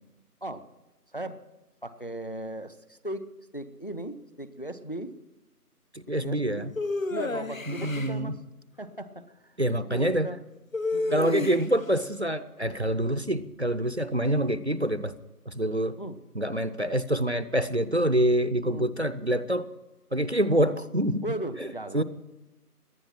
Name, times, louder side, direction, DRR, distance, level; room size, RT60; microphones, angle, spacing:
voice 1, 1.1-1.4 1.8-5.2 6.2-6.7 7.1-8.4 8.8-9.6 9.9-10.5 10.9-11.3 16.0-16.2 18.6-18.9 20.5-20.7 21.2-22.0, right 1 dB, 35° left, 13 dB, 0.7 m, -37 dB
voice 2, 5.9-6.7 7.7-8.4 9.6-10.3 11.1-15.1 15.5-16.0 16.3-19.7 20.1-21.2 21.6-21.7 21.9-22.0, right 1 dB, 45° right, 14 dB, 0.6 m, -26 dB
sound 1, 6.8-8.1 10.7-11.9, left 3 dB, 55° left, 1.2 m, -30 dB
18.5 x 10.5 x 5.8 m, 1.0 s
figure-of-eight pair, 170°, 47 cm